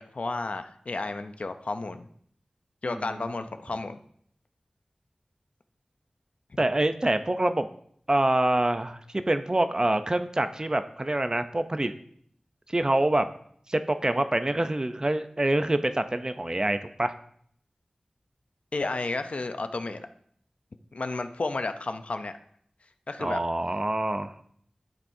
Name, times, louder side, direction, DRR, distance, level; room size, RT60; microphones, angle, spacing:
voice 1, 0.0-2.1 2.8-4.0 6.5-6.6 18.7-20.1 20.9-22.3 23.1-23.4, left 3 dB, 75° left, 8 dB, 0.6 m, -32 dB
voice 2, 2.9-3.3 6.6-7.7 8.1-11.9 12.7-13.3 13.7-17.1 23.2-24.3, right 1 dB, 35° right, 10 dB, 0.6 m, -26 dB
12.0 x 7.4 x 2.7 m, 0.65 s
wide cardioid pair, 55°, 2 cm